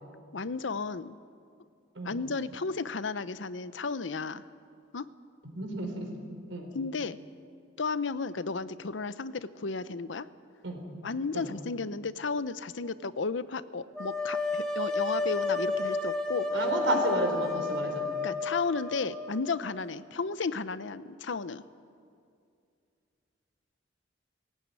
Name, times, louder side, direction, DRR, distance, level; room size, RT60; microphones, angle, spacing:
voice 1, 0.3-1.2 2.0-4.4 4.9-5.1 6.7-7.2 7.8-10.3 11.0-16.7 18.2-21.6, left 4 dB, 90° left, 15 dB, 0.7 m, -33 dB
voice 2, 5.5-6.1 6.5-6.7 10.6-10.8 11.3-11.5 16.5-18.0, right 1 dB, 85° right, 4 dB, 4.2 m, -31 dB
sound 1, 14.0-19.8, left 3 dB, 5° left, 2.1 m, -31 dB
19.5 x 16.5 x 9.6 m, 2.4 s
head